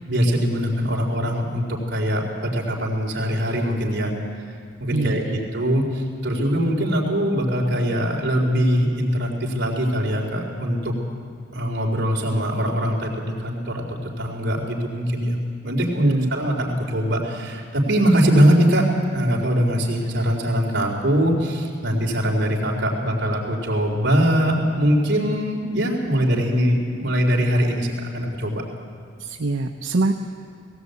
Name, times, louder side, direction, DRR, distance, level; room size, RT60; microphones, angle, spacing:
voice 1, 0.1-4.1 4.8-10.9 11.5-15.4 15.6-28.6, equal, 55° right, -1 dB, 3.8 m, -22 dB
voice 2, 4.9-5.4 16.0-16.3 29.2-30.1, right 2 dB, 80° right, 3 dB, 0.8 m, -23 dB
18.0 x 17.5 x 8.4 m, 2.1 s
head